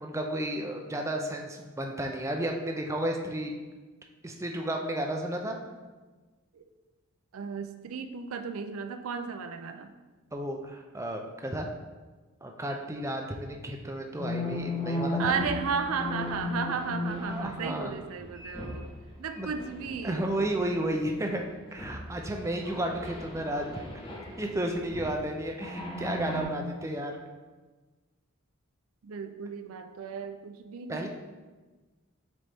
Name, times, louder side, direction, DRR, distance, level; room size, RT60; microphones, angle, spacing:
voice 1, 0.0-3.5 4.2-5.6 10.3-11.7 12.4-15.3 17.1-17.9 19.4-19.5 20.0-21.4 21.7-23.7 24.4-27.2 30.9-31.1, right 1 dB, 15° right, 2 dB, 0.4 m, -32 dB
voice 2, 7.3-9.9 15.2-18.9 19.2-20.2 29.0-31.1, right 5 dB, 70° right, 8 dB, 0.4 m, -34 dB
sound 1, 14.2-19.0 19.4-20.9 21.3-21.4 21.8-25.2 25.6-26.4, left 2 dB, 20° left, 0.8 m, -36 dB
7.3 x 4.1 x 3.4 m, 1.3 s
head